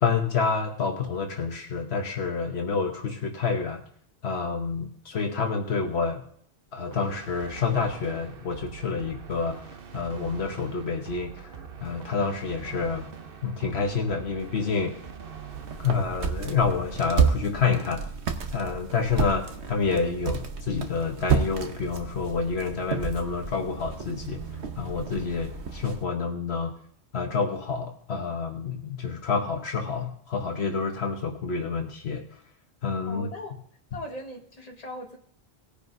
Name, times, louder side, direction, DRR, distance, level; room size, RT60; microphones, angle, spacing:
voice 1, 0.0-3.8 4.2-6.2 6.7-9.6 9.9-11.5 11.8-13.1 13.4-14.9 15.8-18.0 18.5-24.4 24.8-26.7 27.1-32.2 32.8-33.3, left 5 dB, 75° left, 1.3 m, -28 dB
sound 1, 6.9-17.1, right 7 dB, 60° right, 1.0 m, -43 dB
sound 2, 15.5-26.0, right 6 dB, 85° right, 1.3 m, -31 dB
voice 2, 33.1-33.6 33.9-35.2, left 1 dB, 35° left, 1.7 m, -39 dB
19.0 x 10.0 x 2.6 m
omnidirectional pair, 1.1 m